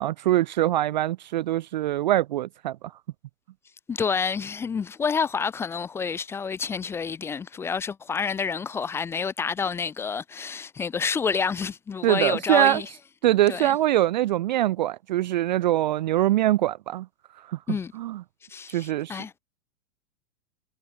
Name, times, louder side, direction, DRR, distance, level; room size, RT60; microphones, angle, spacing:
voice 1, 0.0-2.8 12.0-12.8 13.2-17.1 17.5-17.6 17.9-18.2 18.7-19.2, right 14 dB, 40° right, 0.5 m, -23 dB
voice 2, 3.9-12.9 13.5-13.7 17.7-17.9 18.5-19.3, left 6 dB, 5° left, 0.7 m, -28 dB
supercardioid pair, 170°, 37 cm